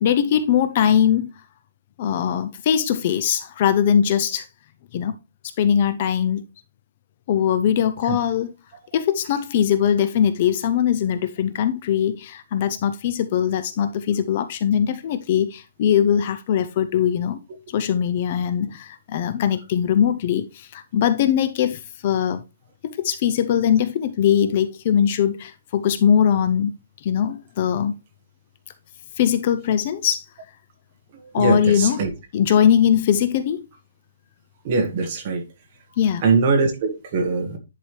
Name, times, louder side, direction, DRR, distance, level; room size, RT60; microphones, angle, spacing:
voice 1, 0.0-1.3 2.0-4.5 4.9-5.2 5.6-6.4 7.3-8.5 8.9-17.4 17.7-22.4 22.8-26.7 27.0-27.9 29.2-30.2 31.3-32.0 32.3-33.6 36.0-36.3, left 9 dB, 30° left, 0.5 m, -21 dB
voice 2, 31.4-32.1 34.6-35.4 36.2-37.6, right 4 dB, 25° right, 1.4 m, -21 dB
10.5 x 4.7 x 3.2 m
hypercardioid pair, 175°, 0 cm